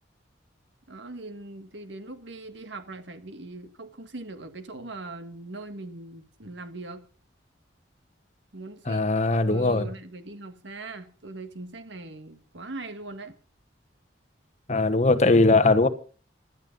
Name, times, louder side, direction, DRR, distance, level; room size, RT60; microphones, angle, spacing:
voice 1, 0.9-7.0 8.5-9.1 9.5-13.3, right 2 dB, 70° right, 1.7 m, -40 dB
voice 2, 8.9-9.9 14.7-15.9, left 2 dB, 35° left, 1.1 m, -20 dB
16.0 x 12.5 x 5.3 m
head